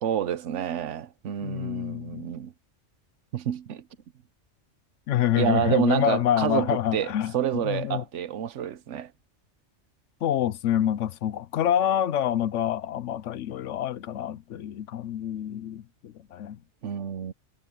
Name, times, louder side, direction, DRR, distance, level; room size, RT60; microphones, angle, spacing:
voice 1, 0.0-2.5 3.3-3.8 5.4-9.1 16.8-17.3, right 10 dB, 80° right, 1.1 m, -28 dB
voice 2, 1.4-2.3 5.1-8.0 10.2-16.6, left 11 dB, 85° left, 1.0 m, -27 dB
omnidirectional pair, 1.2 m